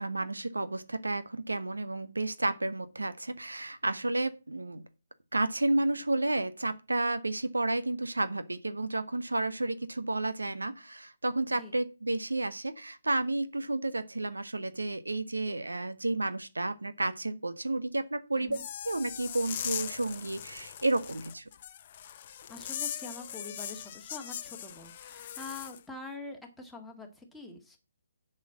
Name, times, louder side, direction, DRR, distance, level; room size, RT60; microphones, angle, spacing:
voice 1, 0.0-4.8 5.3-18.6 18.8-21.4, right 2 dB, 85° right, 0.9 m, -31 dB
sound 1, 18.5-25.8, left 10 dB, 40° left, 0.7 m, -40 dB
voice 2, 22.5-27.8, left 3 dB, ahead, 1.8 m, -45 dB
7.2 x 5.6 x 7.4 m
figure-of-eight pair, 145°, 0 cm